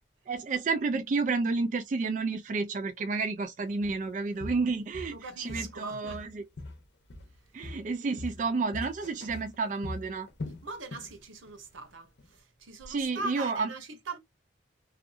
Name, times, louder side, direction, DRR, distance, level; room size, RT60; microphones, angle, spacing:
voice 1, 0.3-6.5 7.5-10.3 12.9-13.7, right 4 dB, 40° right, 0.3 m, -31 dB
Walk footsteps, 3.8-4.0 4.4-5.8 6.1-7.4 7.6-11.2 11.5-11.7 12.2-12.3, left 2 dB, 60° left, 0.8 m, -42 dB
voice 2, 5.1-6.2 10.6-14.2, right 3 dB, 85° right, 0.9 m, -41 dB
2.6 x 2.4 x 2.4 m
head